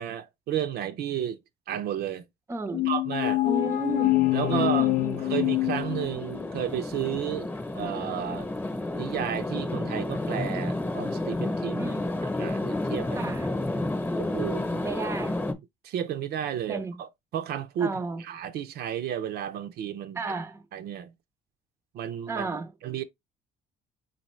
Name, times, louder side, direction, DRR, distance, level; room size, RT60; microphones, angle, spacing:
voice 1, 0.0-1.4 1.7-2.2 2.9-3.4 4.3-4.9 5.3-8.5 8.9-11.9 12.4-13.4 14.2-14.8 15.8-20.2 20.7-21.1 21.9-22.5 22.8-23.0, right 9 dB, 70° right, 0.6 m, -32 dB
voice 2, 2.5-2.9 3.4-4.2 4.5-5.5 11.8-12.1 13.2-13.5 14.8-15.4 16.7-17.0 17.8-18.2 20.1-20.7 22.3-22.7, right 3 dB, 15° right, 0.6 m, -33 dB
sound 1, 2.7-6.5, left 17 dB, 55° left, 0.5 m, -25 dB
sound 2, 3.4-15.5, left 2 dB, 10° left, 1.0 m, -31 dB
4.1 x 4.0 x 3.1 m
cardioid pair, 110°, 17 cm